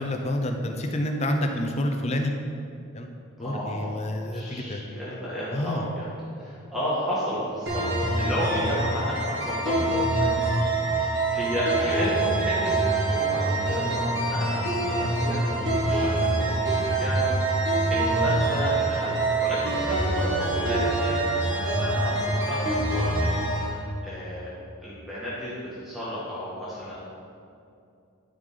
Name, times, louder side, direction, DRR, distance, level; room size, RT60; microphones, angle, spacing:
voice 1, 0.0-2.3 2.9-3.1 3.4-4.8 5.5-5.8, left 1 dB, 30° left, 3 dB, 0.7 m, -28 dB
voice 2, 3.4-6.1 6.4-7.9 8.1-10.3 11.0-24.5 24.8-27.1, equal, ahead, -10 dB, 1.5 m, -32 dB
sound 1, 7.7-23.7, right 2 dB, 55° right, 2.0 m, -25 dB
13.0 x 4.9 x 3.9 m, 2.5 s
head